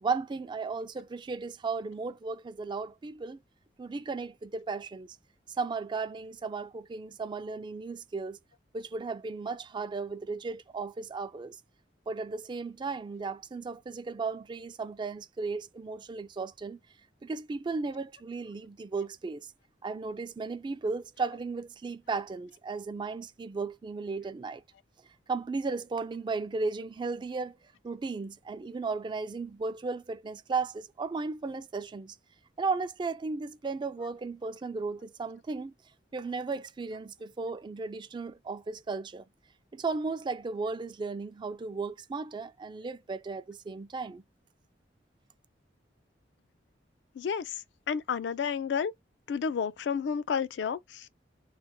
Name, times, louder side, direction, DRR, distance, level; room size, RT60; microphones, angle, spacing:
voice 1, 0.0-3.4 3.8-5.1 5.6-8.4 8.7-11.6 12.1-16.8 17.2-19.5 19.8-24.6 25.3-27.6 27.8-32.1 32.6-35.7 36.1-39.2 39.7-44.2, right 4 dB, 25° right, 0.3 m, -35 dB
voice 2, 47.2-47.6 47.9-48.9 49.3-51.1, left 6 dB, 70° left, 0.3 m, -31 dB
3.2 x 2.1 x 2.9 m
head